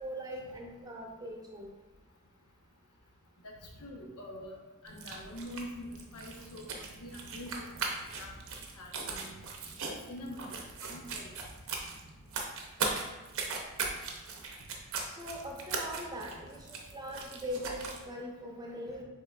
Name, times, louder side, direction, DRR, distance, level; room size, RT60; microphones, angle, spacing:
voice 1, 0.0-1.7 15.1-19.0, equal, 20° right, 0 dB, 0.6 m, -41 dB
voice 2, 3.8-4.6 4.8-7.8 8.1-9.3 9.9-11.3, left 1 dB, 85° left, 0 dB, 0.9 m, -45 dB
sound 1, 4.9-18.0, right 4 dB, 65° right, 0.7 m, -39 dB
5.6 x 3.8 x 2.3 m, 1.2 s
head